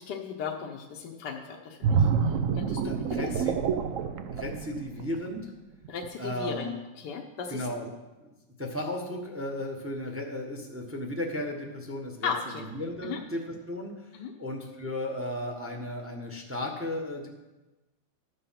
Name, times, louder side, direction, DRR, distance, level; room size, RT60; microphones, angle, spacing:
voice 1, 0.0-3.3 5.9-7.7 12.2-12.6 13.0-13.2 14.1-14.3, left 6 dB, 65° left, 1 dB, 1.4 m, -36 dB
sound 1, 1.8-5.4 5.8-6.1, right 6 dB, 65° right, 0.8 m, -27 dB
voice 2, 2.8-3.6 4.3-5.4 6.2-6.8 7.5-7.9 8.2-12.3 12.7-14.1 14.4-17.3, left 1 dB, 10° right, 1 dB, 0.9 m, -35 dB
12.0 x 6.8 x 5.8 m, 1.1 s
omnidirectional pair, 2.1 m